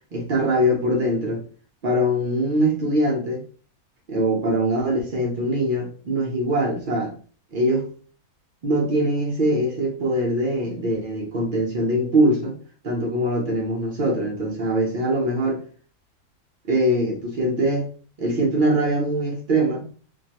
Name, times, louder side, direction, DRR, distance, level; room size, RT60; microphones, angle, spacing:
voice 1, 0.1-1.4 1.8-3.4 4.1-7.2 7.5-7.9 8.6-12.6 12.8-15.6 16.7-17.9 18.2-19.9, right 1 dB, 75° right, 0.4 m, -22 dB
2.5 x 2.2 x 2.8 m
omnidirectional pair, 1.6 m